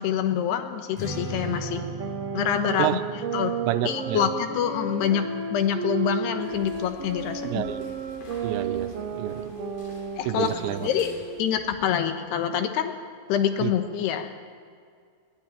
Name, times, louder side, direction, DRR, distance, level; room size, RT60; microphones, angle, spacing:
voice 1, 0.0-1.9 2.3-3.0 3.3-3.5 3.8-7.6 10.2-10.5 10.8-11.1 11.4-12.9 13.3-14.3, left 9 dB, 75° left, 8 dB, 3.1 m, -26 dB
Strum, 0.9-7.2, right 1 dB, 35° left, 8.2 m, -39 dB
sound 1, 1.4-11.4, right 6 dB, 65° right, 1.6 m, -33 dB
voice 2, 3.6-4.3 7.4-7.8 8.4-9.4 10.3-10.9 13.6-13.7, right 14 dB, 85° right, 11 dB, 2.9 m, -28 dB
sound 2, 6.4-11.5, left 3 dB, 55° left, 4.7 m, -46 dB
21.0 x 15.5 x 9.0 m, 2.2 s
omnidirectional pair, 5.1 m